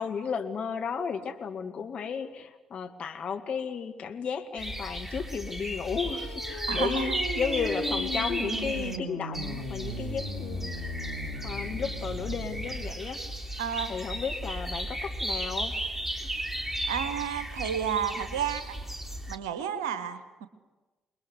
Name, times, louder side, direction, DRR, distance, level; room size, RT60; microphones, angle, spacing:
voice 1, 0.0-10.9 11.4-13.2 13.9-15.7 16.2-16.3, left 6 dB, 50° left, 5 dB, 2.1 m, -34 dB
sound 1, 4.6-9.0 9.3-19.4, right 1 dB, 10° right, 2.9 m, -35 dB
sound 2, 5.7-12.8, left 1 dB, 90° left, 2.0 m, -37 dB
voice 2, 6.7-7.2 13.6-13.9 16.9-18.7 19.3-20.5, right 8 dB, 75° right, 11 dB, 1.4 m, -31 dB
27.0 x 21.5 x 8.1 m, 1.2 s
figure-of-eight pair, 40°, 3 cm